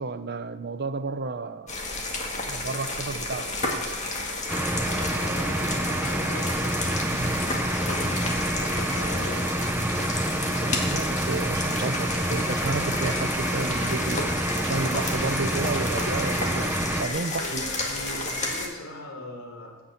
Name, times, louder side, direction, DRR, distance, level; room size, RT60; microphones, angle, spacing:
voice 1, 0.0-1.8 2.5-3.5 7.0-7.3 10.7-17.6, right 3 dB, 50° right, 11 dB, 0.6 m, -32 dB
sound 1, 1.7-18.7, left 2 dB, 35° left, 1.9 m, -31 dB
sound 2, 4.5-17.1, right 1 dB, 10° right, 0.6 m, -28 dB
voice 2, 5.0-6.5 7.7-9.5 17.4-19.7, left 1 dB, 80° left, 0 dB, 3.5 m, -39 dB
16.0 x 5.9 x 7.8 m, 1.2 s
head